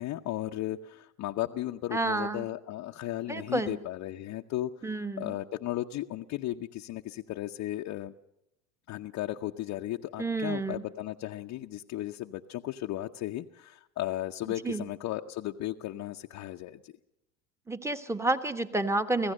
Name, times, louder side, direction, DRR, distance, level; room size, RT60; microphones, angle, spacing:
voice 1, 0.0-4.9 5.2-8.1 8.9-16.9, left 14 dB, 50° left, 2 dB, 0.8 m, -35 dB
voice 2, 1.9-2.5 3.3-3.8 4.8-5.4 10.2-10.8 14.6-14.8 17.7-19.3, right 2 dB, 5° right, 9 dB, 1.3 m, -30 dB
26.0 x 16.0 x 6.5 m, 0.85 s
hypercardioid pair, 85°, 37 cm